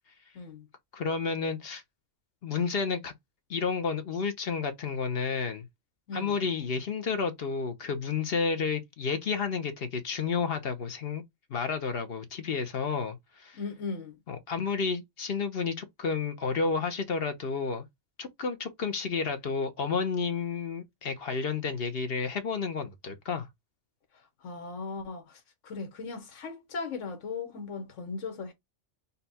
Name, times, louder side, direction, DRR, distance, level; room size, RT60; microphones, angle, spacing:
voice 1, 0.3-0.6 6.1-6.3 13.6-14.2 24.4-28.5, left 4 dB, 90° left, 1.3 m, -38 dB
voice 2, 0.9-1.8 2.4-3.1 3.5-5.6 6.1-11.2 11.5-13.6 14.3-17.8 18.2-23.5, left 5 dB, 55° left, 0.9 m, -31 dB
4.1 x 2.3 x 4.1 m
omnidirectional pair, 1.2 m